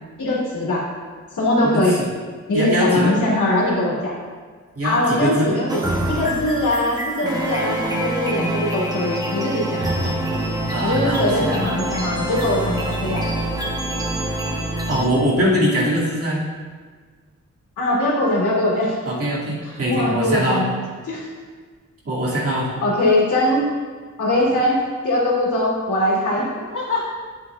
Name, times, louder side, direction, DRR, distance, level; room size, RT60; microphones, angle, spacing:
voice 1, 0.2-0.8 1.3-2.0 2.5-4.1 4.8-5.8 6.1-9.8 10.8-13.2 17.8-19.0 19.6-20.7 21.1-21.2 22.8-23.6 24.2-27.0, left 1 dB, 80° left, -5 dB, 2.7 m, -21 dB
voice 2, 1.7-2.1 2.5-3.1 4.8-5.5 9.8-10.2 10.7-11.8 14.9-16.4 19.0-20.6 22.0-22.7, equal, 50° right, -6 dB, 2.4 m, -22 dB
sound 1, 5.7-15.1, right 1 dB, 15° right, 1.0 m, -25 dB
12.0 x 7.7 x 2.4 m, 1.5 s
wide cardioid pair, 165°, 30 cm